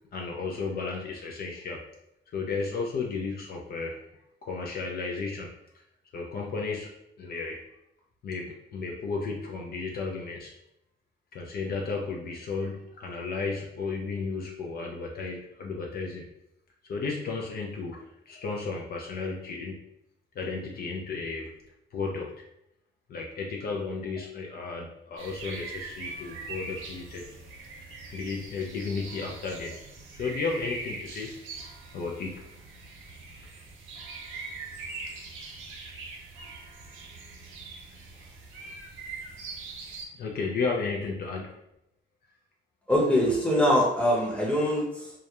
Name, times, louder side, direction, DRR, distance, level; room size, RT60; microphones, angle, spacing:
voice 1, 0.1-1.8 2.3-4.0 4.4-5.5 6.1-6.9 7.2-7.6 8.2-10.5 11.3-16.3 16.9-19.8 20.4-21.5 21.9-22.3 23.1-27.3 27.8-29.8 30.1-31.3 31.9-32.3 38.6-38.7 40.1-41.6, left 4 dB, 50° left, 0 dB, 0.4 m, -33 dB
sound 1, 25.2-40.1, right 3 dB, 85° right, 0.6 m, -42 dB
voice 2, 42.9-45.1, equal, 5° left, -3 dB, 0.8 m, -23 dB
2.3 x 2.0 x 2.8 m, 0.83 s
cardioid pair, 90°, 20 cm